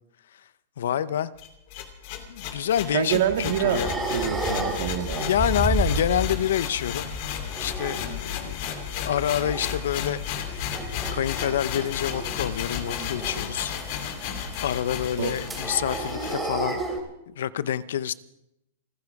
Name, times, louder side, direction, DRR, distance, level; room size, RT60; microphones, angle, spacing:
voice 1, 0.8-1.3 2.3-3.9 5.1-7.1 7.6-8.6 9.0-10.2 10.5-10.6 11.1-13.7 14.6-16.8 17.3-18.1, left 10 dB, 75° left, 0.7 m, -27 dB
sound 1, 1.4-16.4, left 8 dB, 45° left, 2.5 m, -33 dB
sound 2, 2.9-6.5 6.8-8.8 9.1-9.7 10.1-17.0, right 2 dB, 5° right, 3.0 m, -32 dB
voice 2, 2.9-3.8 4.1-5.3 15.2-15.3, right 10 dB, 60° right, 1.8 m, -26 dB
29.5 x 9.8 x 4.8 m
supercardioid pair, 155°, 0 cm